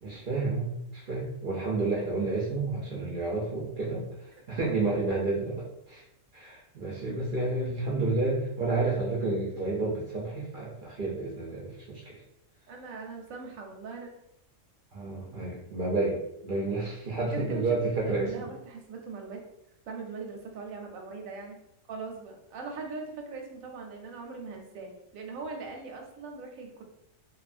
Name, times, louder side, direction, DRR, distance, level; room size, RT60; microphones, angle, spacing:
voice 1, 0.0-6.0 6.3-12.2 14.9-18.5, right 3 dB, 60° right, -5 dB, 0.5 m, -30 dB
voice 2, 12.7-14.1 17.3-17.6 18.0-19.4 19.9-21.5 21.9-26.8, right 4 dB, 90° right, 1 dB, 1.0 m, -40 dB
2.7 x 2.3 x 2.4 m, 0.82 s
omnidirectional pair, 1.4 m